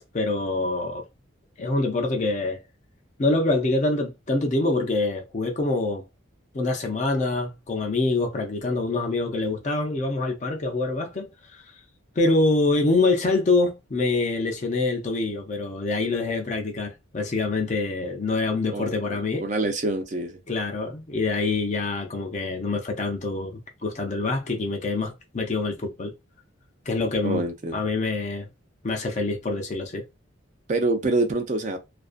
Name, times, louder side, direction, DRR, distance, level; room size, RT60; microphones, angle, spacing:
voice 1, 0.1-1.0 1.6-2.6 3.2-6.0 6.5-11.7 12.2-19.4 20.5-26.1 26.9-27.4 27.7-28.5 28.8-30.0, left 3 dB, 35° left, 0.4 m, -25 dB
voice 2, 18.7-20.4 27.2-27.8 30.7-31.8, right 2 dB, 35° right, 0.4 m, -26 dB
2.4 x 2.3 x 2.4 m
head